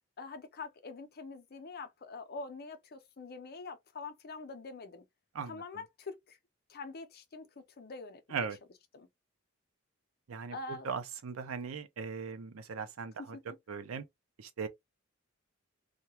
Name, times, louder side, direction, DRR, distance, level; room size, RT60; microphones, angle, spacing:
voice 1, 0.2-5.0 5.5-6.4 6.7-7.5 7.8-8.5 8.9-9.1 10.5-10.9 13.3-13.4, left 3 dB, 50° left, 0.6 m, -45 dB
voice 2, 10.3-13.4 13.7-14.0 14.4-14.7, right 5 dB, 80° right, 0.5 m, -39 dB
2.3 x 2.2 x 2.8 m
head